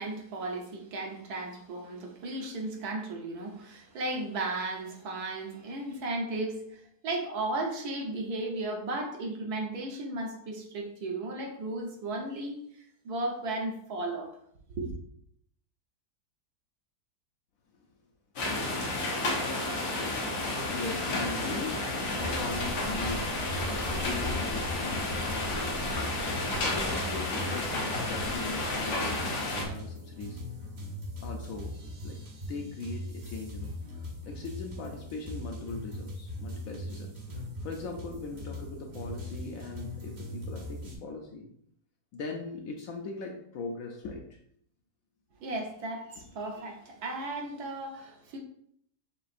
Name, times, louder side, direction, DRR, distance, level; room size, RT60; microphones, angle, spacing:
voice 1, 0.0-12.6 13.0-14.3 14.8-14.9 45.4-48.4, right 2 dB, 70° right, 1 dB, 1.3 m, -35 dB
sound 1, 18.4-29.7, left 2 dB, 90° left, 1.5 m, -31 dB
voice 2, 20.7-21.8 22.1-30.4 31.2-31.7 32.0-32.2 32.5-41.5 42.1-44.4, left 3 dB, 70° left, 1 dB, 0.9 m, -40 dB
sound 2, 22.2-40.9, left 1 dB, 45° right, 0.6 m, -40 dB
6.8 x 2.5 x 2.5 m, 0.69 s
omnidirectional pair, 1.8 m